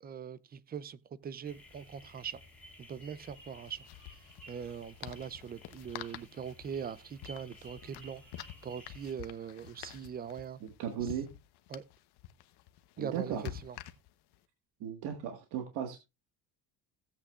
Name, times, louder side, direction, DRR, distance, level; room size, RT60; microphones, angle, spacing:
voice 1, 0.0-2.4 2.8-3.8 4.5-8.2 8.6-10.6 11.0-11.1 11.7-11.8 13.0-13.8, right 7 dB, 25° right, 0.4 m, -41 dB
sound 1, 1.2-1.3 1.5-1.7 3.2-14.4, left 14 dB, 75° left, 1.0 m, -49 dB
sound 2, 1.4-9.1, equal, 5° left, 3.3 m, -55 dB
voice 2, 10.6-11.3 13.0-13.5 14.8-16.0, right 8 dB, 75° right, 1.7 m, -36 dB
16.5 x 8.5 x 2.4 m
cardioid pair, 145°, 40 cm